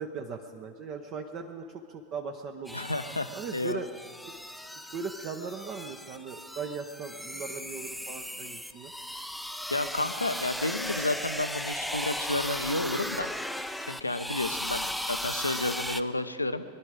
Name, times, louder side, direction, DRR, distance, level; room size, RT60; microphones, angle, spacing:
voice 1, 0.0-2.8 3.3-3.9 4.3-4.4 4.9-8.9, right 5 dB, 35° right, 5 dB, 0.9 m, -38 dB
voice 2, 2.7-3.8 9.7-13.3 13.8-16.6, left 2 dB, 85° left, 11 dB, 0.7 m, -31 dB
sound 1, 2.7-16.0, equal, ahead, 0.5 m, -36 dB
22.0 x 11.5 x 5.0 m, 2.1 s
figure-of-eight pair, 90°, 0 cm